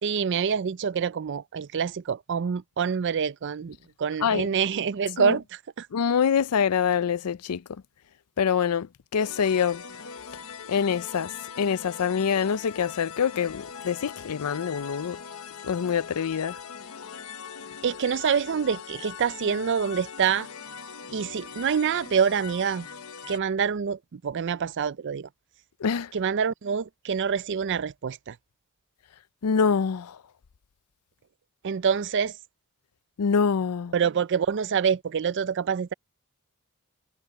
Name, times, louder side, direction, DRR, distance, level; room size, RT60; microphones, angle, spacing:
voice 1, 0.0-5.4 5.8-5.9 17.8-20.5 21.1-22.9 23.3-25.3 26.1-28.4 31.6-32.4 33.9-35.9, right 6 dB, 55° right, 0.4 m, -26 dB
voice 2, 5.9-7.6 8.4-9.8 10.7-15.2 15.6-16.6 25.8-26.1 29.4-30.2 33.2-33.9, left 7 dB, 85° left, 0.5 m, -25 dB
sound 1, 9.2-23.4, left 6 dB, 70° left, 0.9 m, -41 dB
head